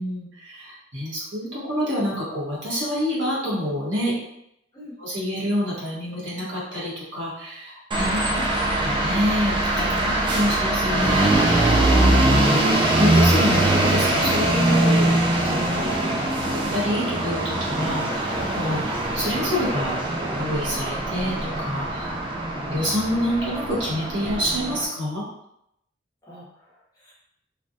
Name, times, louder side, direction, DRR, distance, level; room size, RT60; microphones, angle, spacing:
voice 1, 0.0-4.1 5.0-8.5 8.7-22.2 22.6-25.2, equal, 75° right, -7 dB, 1.3 m, -28 dB
sound 1, 7.9-24.8, right 1 dB, 25° right, 0.4 m, -22 dB
voice 2, 8.2-8.9 10.2-10.4 26.2-27.1, left 1 dB, 20° left, -8 dB, 1.0 m, -44 dB
3.2 x 2.3 x 2.6 m, 0.78 s
head